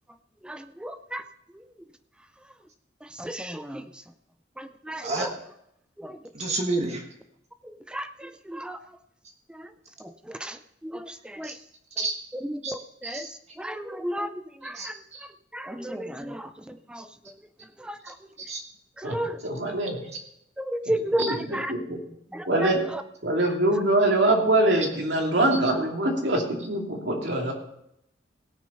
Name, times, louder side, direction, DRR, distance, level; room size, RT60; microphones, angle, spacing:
voice 1, 0.4-1.2 3.2-3.9 4.6-5.3 6.0-6.2 7.9-8.8 9.5-9.7 10.3-10.6 10.8-11.6 12.4-13.3 13.6-14.3 14.6-14.9 15.5-17.1 17.8-18.1 19.0-19.4 20.6-21.7 22.3-22.7, right 1 dB, 5° right, 10 dB, 0.4 m, -33 dB
voice 2, 6.3-7.0 11.4-11.5 12.0-12.1 12.6-12.7 13.0-13.3 14.7-15.2 18.5-18.6 21.2-21.3, right 2 dB, 40° right, 2 dB, 1.4 m, -29 dB
voice 3, 19.4-20.0 21.2-22.0 22.5-22.8 23.2-27.5, right 1 dB, 70° right, 1 dB, 2.7 m, -24 dB
17.5 x 6.6 x 5.4 m, 0.76 s
head